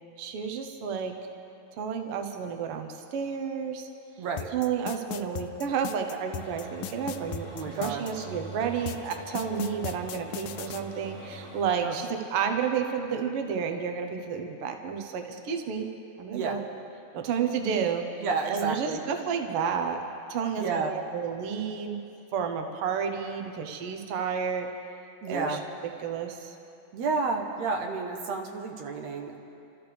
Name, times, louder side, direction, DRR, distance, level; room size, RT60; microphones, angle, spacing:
voice 1, 0.2-1.1 1.8-3.9 4.5-15.9 16.2-16.6 17.1-20.0 20.3-22.0 22.3-24.7 25.3-25.6 26.0-26.6, right 7 dB, 90° right, 5 dB, 1.2 m, -31 dB
voice 2, 4.2-4.5 7.5-8.2 11.8-11.9 16.3-16.6 18.2-19.0 20.6-20.9 25.2-25.6 26.9-29.4, right 4 dB, 65° right, 2 dB, 2.0 m, -31 dB
sound 1, 4.4-8.1 8.9-10.8, left 12 dB, 80° left, 1.9 m, -37 dB
sound 2, 6.4-11.7, right 1 dB, 35° right, 5.1 m, -44 dB
29.5 x 13.5 x 3.4 m, 2.7 s
omnidirectional pair, 4.0 m